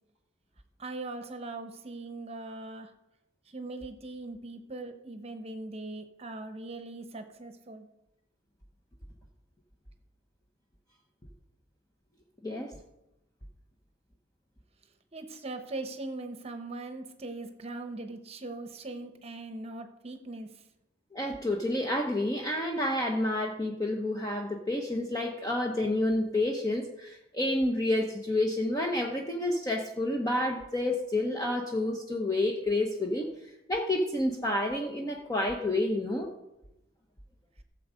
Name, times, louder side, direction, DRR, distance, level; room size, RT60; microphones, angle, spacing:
voice 1, 0.8-2.9 3.5-7.9 15.1-20.5, right 2 dB, 30° right, 7 dB, 0.9 m, -40 dB
voice 2, 21.1-33.3 33.7-36.3, left 1 dB, 20° left, 1 dB, 0.9 m, -29 dB
15.5 x 7.3 x 5.1 m, 0.91 s
head